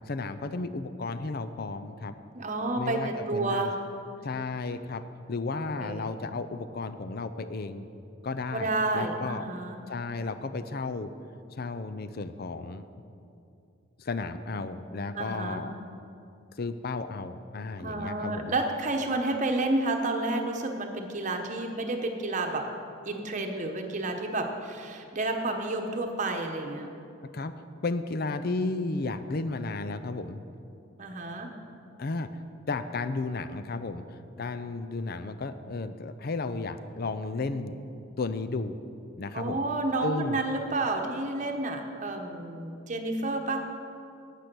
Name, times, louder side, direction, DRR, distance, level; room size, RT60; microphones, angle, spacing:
voice 1, 0.1-2.2 2.8-3.7 4.2-5.0 5.3-7.9 8.2-9.5 9.9-11.1 11.5-12.8 14.0-15.7 16.6-18.5 27.3-27.5 27.8-30.4 32.0-32.4 32.7-37.8 38.2-38.8 39.1-39.6 40.0-40.4, left 3 dB, 50° left, 11 dB, 0.5 m, -33 dB
voice 2, 2.3-3.8 5.8-6.1 8.5-9.8 15.1-15.7 17.8-22.7 23.0-26.9 31.0-31.5 39.3-43.7, right 2 dB, 40° right, 4 dB, 1.0 m, -30 dB
11.5 x 8.4 x 6.1 m, 2.6 s
head